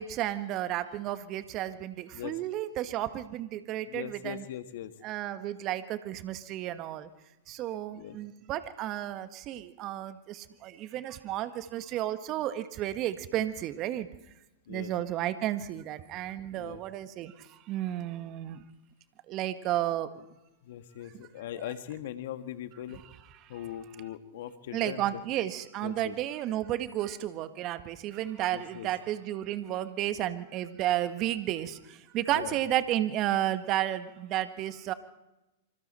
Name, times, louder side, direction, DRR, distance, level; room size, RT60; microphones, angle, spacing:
voice 1, 0.0-4.4 5.0-7.1 7.5-10.1 10.6-14.1 14.7-17.3 17.7-18.6 19.3-20.1 24.7-31.7 32.1-34.9, right 13 dB, 40° right, 11 dB, 1.5 m, -32 dB
voice 2, 3.9-4.9 7.9-8.2 14.7-14.9 16.5-16.8 20.6-23.0 23.5-25.0 25.8-26.1 28.5-28.9 32.3-32.6, left 11 dB, 65° left, 10 dB, 1.6 m, -40 dB
26.5 x 25.0 x 4.3 m, 0.97 s
hypercardioid pair, 105°, 0 cm